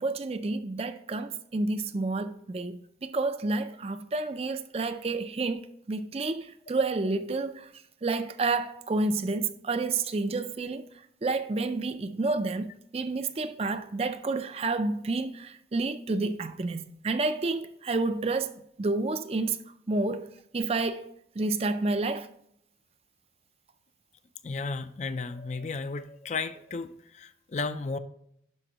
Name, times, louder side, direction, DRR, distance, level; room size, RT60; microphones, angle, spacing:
voice 1, 0.0-7.7 8.0-10.9 11.2-18.5 18.8-19.6 19.9-21.1 21.4-22.3, right 3 dB, 35° right, 0.4 m, -30 dB
voice 2, 24.4-28.0, left 4 dB, 40° left, 0.4 m, -34 dB
11.0 x 5.3 x 2.9 m
head